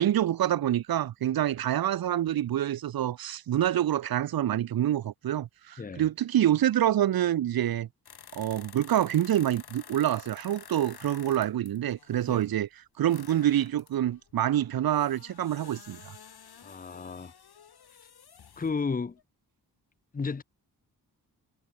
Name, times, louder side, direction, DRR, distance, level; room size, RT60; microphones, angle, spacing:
voice 1, 0.0-7.9 8.3-12.7 13.0-16.2, right 11 dB, 65° right, 0.6 m, -26 dB
sound 1, 8.1-12.5 13.1-18.8 19.2-19.3, left 8 dB, 75° left, 4.2 m, -51 dB
voice 2, 16.6-17.3 18.6-19.2 20.1-20.4, left 4 dB, 20° left, 0.8 m, -33 dB
wide cardioid pair, 155°, 38 cm